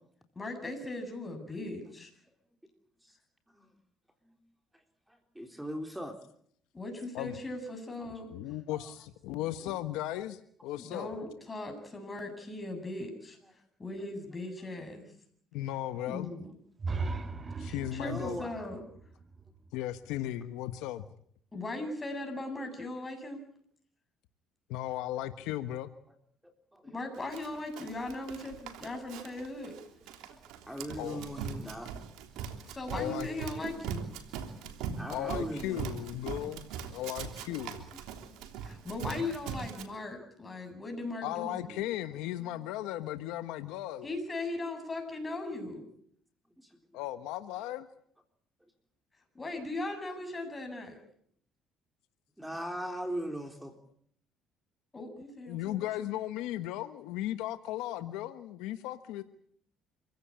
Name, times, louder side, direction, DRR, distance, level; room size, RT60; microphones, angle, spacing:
voice 1, 0.3-2.1 6.7-8.3 9.6-9.7 10.8-13.4 13.8-15.0 16.1-16.5 17.6-18.8 21.5-23.4 26.8-29.7 32.7-34.1 38.6-41.9 44.0-45.9 49.3-51.0 54.9-56.1, left 2 dB, 20° left, 5 dB, 7.8 m, -39 dB
voice 2, 5.4-6.2 8.7-8.9 18.0-18.7 26.4-26.9 30.3-30.4 30.7-32.0 35.0-35.9 37.9-38.3 42.4-42.5 45.6-45.7 52.4-53.7, equal, 5° right, 5 dB, 3.8 m, -39 dB
voice 3, 8.3-11.1 15.5-16.3 17.6-18.4 19.7-21.0 24.7-25.9 30.9-31.2 32.9-33.3 35.1-37.9 41.2-44.1 46.9-47.9 55.5-59.2, left 13 dB, 85° left, 10 dB, 1.3 m, -36 dB
sound 1, 16.8-20.6, right 3 dB, 30° right, 2.0 m, -39 dB
Run, 27.3-39.8, right 7 dB, 80° right, 3.2 m, -41 dB
26.5 x 16.5 x 8.7 m, 0.65 s
supercardioid pair, 90°, 0 cm